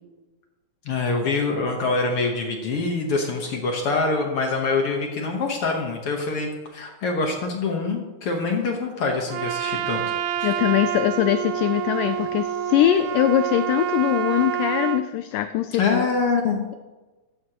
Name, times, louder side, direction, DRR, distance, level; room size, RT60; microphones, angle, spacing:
voice 1, 0.8-10.0 10.4-10.5 15.7-16.7, left 3 dB, 70° left, 2 dB, 1.3 m, -25 dB
Trumpet, 9.3-15.1, right 10 dB, 80° right, 2.4 m, -27 dB
voice 2, 10.4-16.0, left 13 dB, 85° left, 10 dB, 1.8 m, -22 dB
14.5 x 12.5 x 2.9 m, 1.2 s
omnidirectional pair, 4.2 m